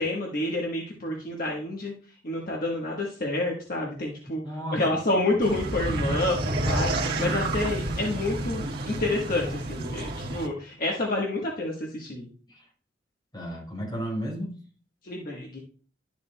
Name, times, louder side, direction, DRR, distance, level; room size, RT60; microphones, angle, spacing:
voice 1, 0.0-1.9 2.2-4.4 4.7-12.3 15.0-15.6, left 2 dB, 50° left, -2 dB, 1.2 m, -29 dB
voice 2, 4.4-5.3 12.5-12.7 13.3-14.6, equal, 25° left, -2 dB, 4.1 m, -34 dB
sound 1, 5.4-10.5, right 2 dB, 60° right, 1.4 m, -29 dB
12.0 x 7.2 x 2.2 m, 0.42 s
head